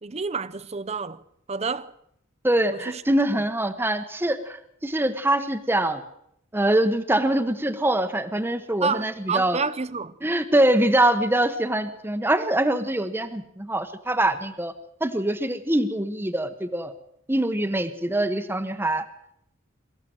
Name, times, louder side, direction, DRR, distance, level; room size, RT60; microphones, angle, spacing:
voice 1, 0.0-1.2 1.5-1.9 2.7-3.0 8.8-10.2, right 5 dB, 30° right, 0.7 m, -29 dB
voice 2, 2.4-6.0 6.5-9.6 10.2-14.7 15.0-16.9 17.3-19.0, right 1 dB, 10° right, 1.0 m, -24 dB
23.5 x 14.5 x 7.7 m
head